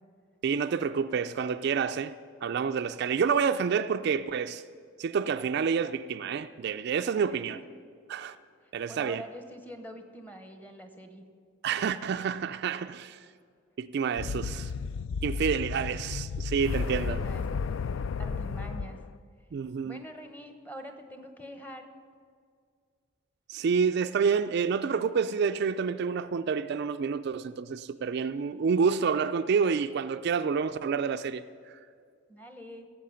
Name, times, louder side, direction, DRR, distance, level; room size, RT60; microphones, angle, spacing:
voice 1, 0.4-2.1 2.4-4.6 5.0-7.6 8.1-8.4 8.7-9.2 11.6-13.2 13.8-14.7 15.2-17.2 19.5-20.0 23.5-31.4, right 6 dB, 55° right, 0.3 m, -28 dB
voice 2, 8.9-11.2 16.9-17.6 18.0-19.0 19.8-21.9 32.3-32.9, equal, 10° left, 0.9 m, -45 dB
sound 1, 14.2-19.2, left 5 dB, 70° left, 0.3 m, -33 dB
16.5 x 7.5 x 5.7 m
head